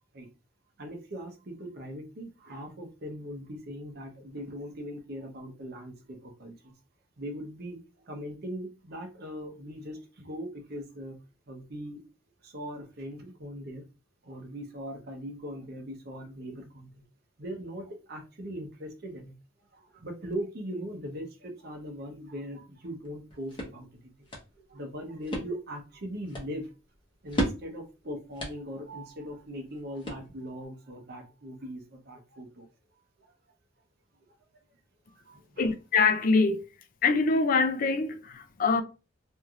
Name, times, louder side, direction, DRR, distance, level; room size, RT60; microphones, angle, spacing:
voice 1, 0.8-6.7 7.2-11.2 11.5-12.0 12.4-13.8 14.2-17.0 17.4-19.3 19.7-24.3 24.7-26.7 27.2-32.7 33.2-33.3 35.1-35.7, equal, 50° right, 0.8 m, -40 dB
sound 1, 23.0-30.7, equal, 25° left, 0.9 m, -38 dB
voice 2, 35.6-36.6 37.0-38.8, left 4 dB, 45° left, 0.4 m, -24 dB
3.2 x 2.6 x 2.3 m
head